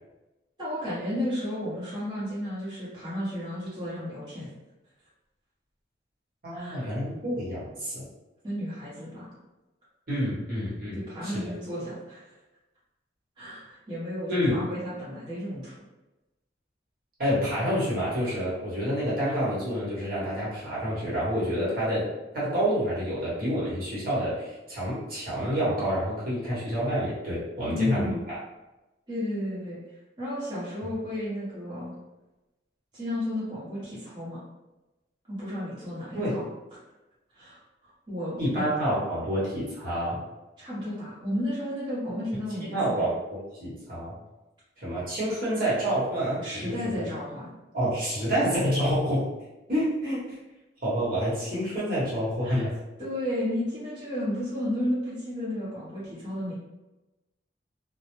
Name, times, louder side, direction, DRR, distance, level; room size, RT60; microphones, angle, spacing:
voice 1, 0.6-4.5 6.5-6.9 8.4-9.3 10.9-12.3 13.4-15.8 27.7-28.2 29.1-29.8 30.2-31.9 32.9-34.4 35.3-36.4 36.7-36.8 37.3-37.6 38.1-38.6 40.6-43.1 46.4-47.5 52.4-52.7 53.0-56.5, left 1 dB, 25° right, -10 dB, 0.8 m, -33 dB
voice 2, 6.4-8.0 10.1-11.5 14.3-14.6 17.2-22.1 22.3-28.4 36.1-36.4 38.4-40.2 42.7-44.1 44.8-47.0 47.7-49.3 49.7-50.3 50.8-52.7, equal, 55° right, -8 dB, 1.0 m, -28 dB
2.1 x 2.0 x 2.9 m, 1.0 s
head